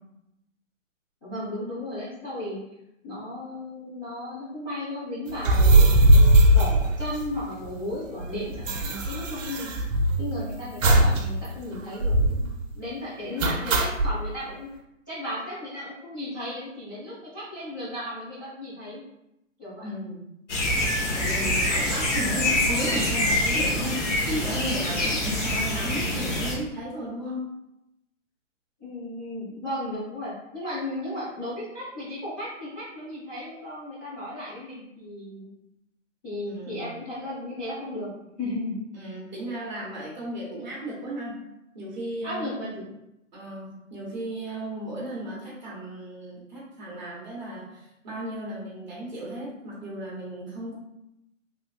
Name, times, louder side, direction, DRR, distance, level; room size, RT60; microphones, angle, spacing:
voice 1, 1.2-2.6 3.0-6.1 6.5-9.8 10.2-12.5 12.7-14.7 15.1-19.0 19.6-19.9 28.8-35.5 36.2-38.1 38.4-39.1 42.2-42.9, left 1 dB, 15° left, -13 dB, 0.7 m, -35 dB
sound 1, 5.4-7.6 7.9-8.0 8.2-10.3 10.8-11.2 11.5-11.6 12.0-12.5 13.4-14.1, right 1 dB, 70° right, 0.6 m, -19 dB
voice 2, 19.8-20.3 21.1-27.5 36.4-36.9 38.9-41.4 41.7-42.6 43.3-50.7, right 1 dB, 35° right, -5 dB, 1.0 m, -34 dB
sound 2, 20.5-26.6, left 1 dB, 65° left, 1.2 m, -25 dB
3.4 x 2.9 x 2.3 m, 0.86 s
hypercardioid pair, 170°, 39 cm